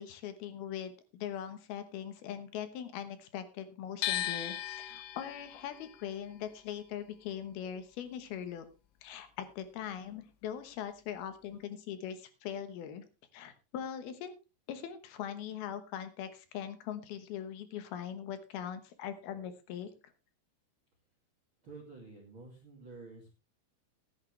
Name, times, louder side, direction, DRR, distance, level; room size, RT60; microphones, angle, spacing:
voice 1, 0.0-8.7 9.0-13.0 13.3-14.3 14.7-19.9, left 9 dB, 70° left, 11 dB, 2.6 m, -41 dB
sound 1, 4.0-10.1 10.3-11.6, left 12 dB, 90° left, 3.4 m, -40 dB
voice 2, 21.6-23.3, right 3 dB, 35° right, 1 dB, 2.4 m, -50 dB
15.0 x 11.0 x 3.3 m, 0.29 s
omnidirectional pair, 5.5 m